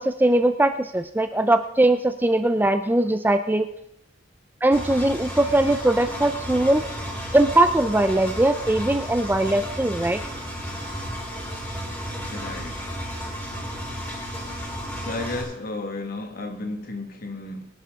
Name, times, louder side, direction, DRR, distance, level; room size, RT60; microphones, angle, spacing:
voice 1, 0.0-3.7 4.6-6.8 7.3-10.2, right 1 dB, 10° right, 0.5 m, -20 dB
Engine, 4.7-15.4, equal, 15° left, 5.6 m, -33 dB
voice 2, 12.3-12.8 15.0-17.7, left 2 dB, 50° left, 1.8 m, -33 dB
22.5 x 10.5 x 3.7 m
head